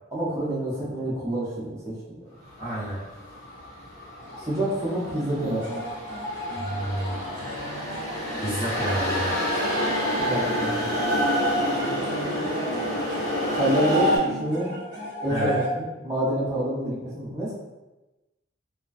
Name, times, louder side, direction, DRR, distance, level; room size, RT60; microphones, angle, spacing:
voice 1, 0.1-2.2 4.4-5.8 10.2-11.0 13.6-14.7 15.2-17.5, right 1 dB, 15° right, -8 dB, 0.6 m, -27 dB
sound 1, 2.5-14.2, equal, 65° left, 1.0 m, -28 dB
voice 2, 2.6-3.0 6.5-7.2 8.4-9.4 15.3-15.5, equal, 30° left, -12 dB, 1.3 m, -29 dB
sound 2, 4.2-15.7, equal, 55° right, 0.6 m, -34 dB
2.3 x 2.2 x 2.4 m, 1.0 s
head